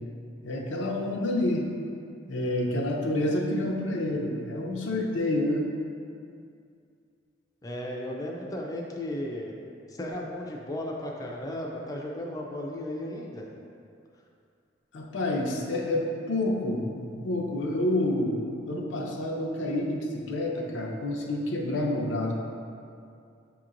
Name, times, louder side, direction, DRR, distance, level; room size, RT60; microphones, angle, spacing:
voice 1, 0.4-1.7 2.3-5.6 14.9-22.3, left 1 dB, 85° left, -1 dB, 0.6 m, -28 dB
voice 2, 7.6-9.5 9.9-13.5, left 1 dB, 20° left, -2 dB, 0.3 m, -35 dB
7.2 x 2.9 x 2.5 m, 2.4 s
head